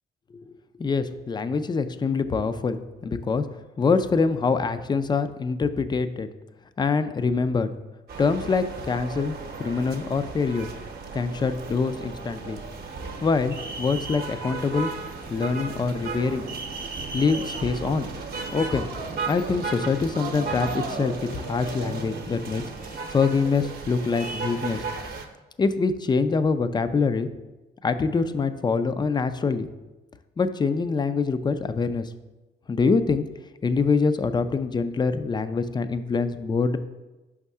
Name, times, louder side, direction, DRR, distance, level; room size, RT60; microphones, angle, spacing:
voice 1, 0.8-3.4 3.8-6.3 6.8-7.7 8.2-10.7 11.1-12.6 13.2-14.9 15.3-16.4 17.1-18.1 18.5-18.9 19.3-22.6 23.1-24.8 25.6-27.3 27.8-29.7 30.4-32.1 32.7-33.3 33.6-36.8, left 4 dB, 20° left, 11 dB, 0.4 m, -24 dB
sound 1, 8.1-25.2, right 4 dB, 50° right, 0.8 m, -35 dB
5.2 x 3.6 x 5.5 m, 1.1 s
cardioid pair, 90°, 20 cm